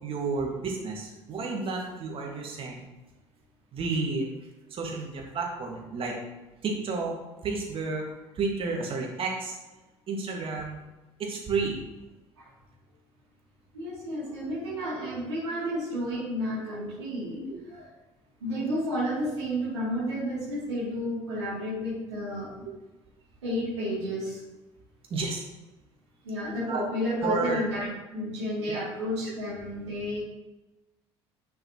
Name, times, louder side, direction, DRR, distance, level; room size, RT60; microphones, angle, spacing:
voice 1, 0.0-2.9 3.7-4.3 4.7-6.2 6.6-7.2 7.4-8.1 8.4-9.6 10.1-10.8 11.2-11.8 15.0-15.2 15.6-15.7 17.4-17.5 25.1-25.4 26.7-26.8 27.2-27.6 28.7-28.8, right 4 dB, 40° right, 0 dB, 1.9 m, -31 dB
voice 2, 13.7-17.4 17.7-17.9 18.4-22.5 23.4-24.4 26.2-30.2, equal, 75° right, -9 dB, 2.7 m, -31 dB
10.5 x 5.5 x 3.0 m, 1.1 s
figure-of-eight pair, 55°, 14 cm